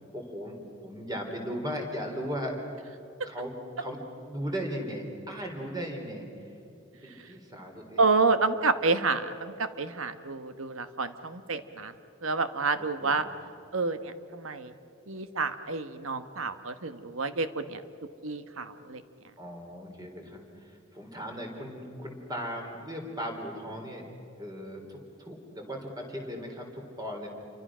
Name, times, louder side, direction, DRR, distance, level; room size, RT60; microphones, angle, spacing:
voice 1, 0.1-2.6 3.2-4.0 4.3-6.3 7.0-8.1 13.0-13.3 19.4-24.1 24.4-27.3, equal, 20° right, 2 dB, 3.9 m, -37 dB
voice 2, 8.0-11.9 12.2-13.2 13.7-14.7 15.1-17.8 18.2-19.0, right 4 dB, 80° right, 10 dB, 1.3 m, -29 dB
29.5 x 24.5 x 6.3 m, 2.9 s
head